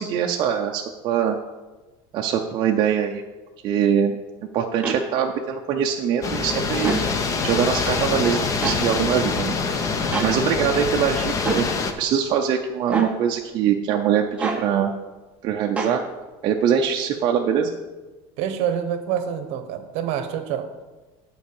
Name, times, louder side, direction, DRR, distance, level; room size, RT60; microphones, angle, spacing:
voice 1, 0.0-1.4 2.1-3.2 3.6-4.2 4.5-6.9 7.4-11.7 12.0-14.9 15.4-16.0 16.4-17.7, right 8 dB, 35° right, 1 dB, 0.5 m, -23 dB
sound 1, 4.8-5.0 6.8-7.0 8.6-8.8 10.1-10.3 11.5-11.7 12.9-13.1 14.4-14.7 15.8-16.0, right 4 dB, 10° right, 0.8 m, -25 dB
sound 2, 6.2-11.9, left 4 dB, 25° left, 0.6 m, -25 dB
voice 2, 18.4-20.7, right 9 dB, 55° right, 9 dB, 0.9 m, -27 dB
9.1 x 4.6 x 7.0 m, 1.2 s
cardioid pair, 175°, 13 cm